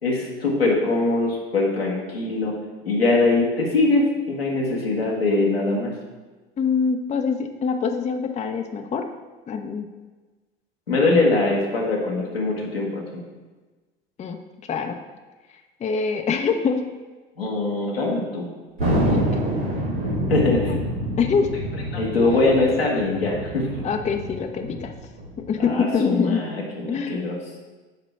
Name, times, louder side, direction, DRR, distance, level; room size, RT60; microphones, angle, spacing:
voice 1, 0.0-2.6 2.8-5.9 10.9-13.0 17.4-18.5 20.3-20.7 21.9-23.8 25.6-27.6, left 2 dB, 90° left, -3 dB, 1.4 m, -22 dB
voice 2, 6.6-9.1 9.5-9.9 14.2-14.4 14.7-15.0 15.8-16.8 19.1-19.2 20.7-20.8 21.2-21.5 23.8-24.9 25.5-26.4 26.9-27.2, left 5 dB, 25° left, 6 dB, 0.6 m, -24 dB
Thunder, 18.8-25.6, equal, 90° right, 2.0 m, -27 dB
8.8 x 2.9 x 5.9 m, 1.3 s
figure-of-eight pair, 70°, 29 cm